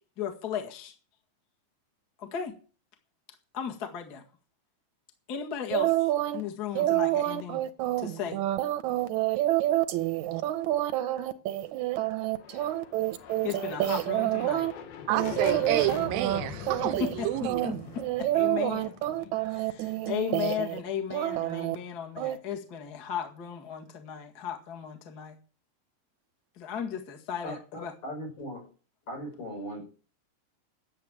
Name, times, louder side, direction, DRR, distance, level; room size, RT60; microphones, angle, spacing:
voice 1, 0.2-0.9 2.2-2.5 3.5-4.2 5.3-7.6 8.0-8.4 13.4-14.6 16.8-17.8 18.2-18.9 19.5-25.4 26.6-27.9, left 8 dB, 35° left, 1.7 m, -35 dB
sound 1, 5.7-6.4 6.7-14.7 15.1-16.4 16.7-17.2 17.4-20.8 21.1-21.8 22.2-22.4, right 14 dB, 70° right, 2.0 m, -28 dB
sound 2, 12.3-20.0, left 7 dB, 90° left, 3.2 m, -42 dB
voice 2, 15.1-17.7, right 14 dB, 85° right, 2.5 m, -30 dB
voice 3, 27.4-28.7 29.1-29.8, equal, 70° left, 7.3 m, -38 dB
11.0 x 7.4 x 8.7 m
omnidirectional pair, 4.1 m